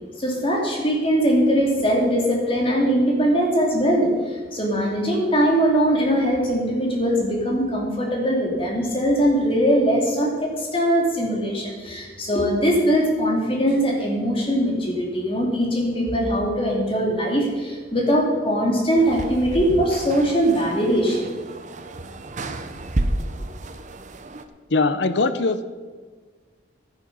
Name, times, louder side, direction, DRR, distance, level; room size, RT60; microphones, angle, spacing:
voice 1, 0.2-21.3, equal, 30° left, -1 dB, 2.8 m, -21 dB
sound 1, 19.0-24.5, right 1 dB, 40° right, 0.8 m, -31 dB
voice 2, 24.7-25.7, left 3 dB, 70° left, 12 dB, 0.8 m, -21 dB
12.0 x 10.5 x 5.5 m, 1.5 s
head